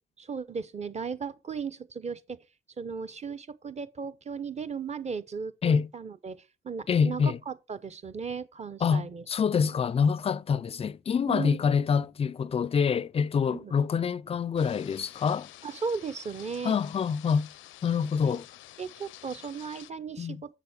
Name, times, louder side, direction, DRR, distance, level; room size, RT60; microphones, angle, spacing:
voice 1, 0.2-2.4 2.8-9.2 11.2-11.8 13.4-13.7 15.6-16.7 18.2-18.4 18.8-20.6, right 5 dB, 35° right, 0.8 m, -36 dB
voice 2, 6.9-7.4 8.8-15.5 16.6-17.5 17.8-18.5 20.2-20.4, left 6 dB, 30° left, 0.4 m, -26 dB
sound 1, 14.6-19.9, left 15 dB, 85° left, 0.5 m, -49 dB
7.1 x 6.8 x 5.0 m
cardioid pair, 90°, 20 cm